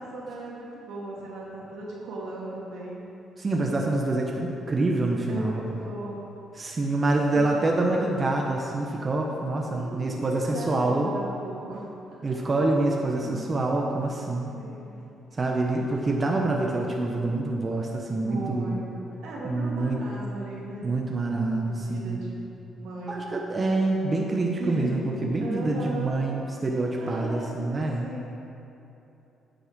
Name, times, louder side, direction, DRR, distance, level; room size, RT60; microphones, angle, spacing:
voice 1, 0.0-3.1 5.3-6.3 7.3-7.6 9.7-12.3 13.1-13.5 14.5-15.0 18.2-20.9 21.6-22.3 22.8-23.2 24.6-26.2 27.0-27.5 28.0-28.4, right 2 dB, 85° right, -4 dB, 2.4 m, -37 dB
voice 2, 3.4-5.6 6.5-11.1 12.2-14.6 15.4-18.8 19.4-20.0 20.8-22.2 23.1-28.1, right 2 dB, 30° right, 0 dB, 1.0 m, -26 dB
9.6 x 6.6 x 6.2 m, 2.9 s
cardioid pair, 90°, 0 cm